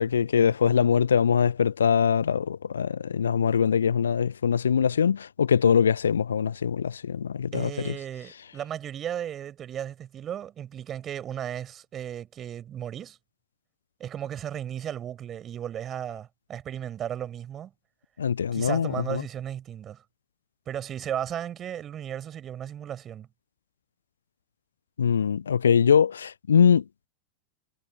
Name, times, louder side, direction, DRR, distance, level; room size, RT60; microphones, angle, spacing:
voice 1, 0.0-7.9 18.2-19.2 25.0-26.8, left 7 dB, 70° left, 0.4 m, -23 dB
voice 2, 7.5-13.2 14.0-17.7 18.5-20.0 20.7-23.3, right 10 dB, 25° right, 6.8 m, -35 dB
figure-of-eight pair, 90°, 0 cm